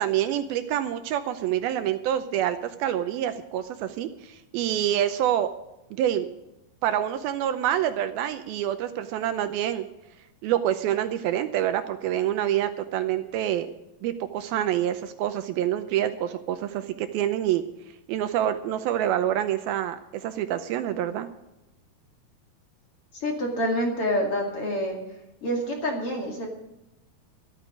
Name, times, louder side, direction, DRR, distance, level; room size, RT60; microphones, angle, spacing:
voice 1, 0.0-5.5 5.9-6.3 6.8-9.9 10.4-13.7 14.0-17.6 18.1-21.3, right 11 dB, 80° right, 9 dB, 2.4 m, -27 dB
voice 2, 23.2-25.0 25.4-26.5, equal, 40° left, 0 dB, 2.7 m, -27 dB
13.5 x 12.5 x 5.2 m, 0.93 s
omnidirectional pair, 4.6 m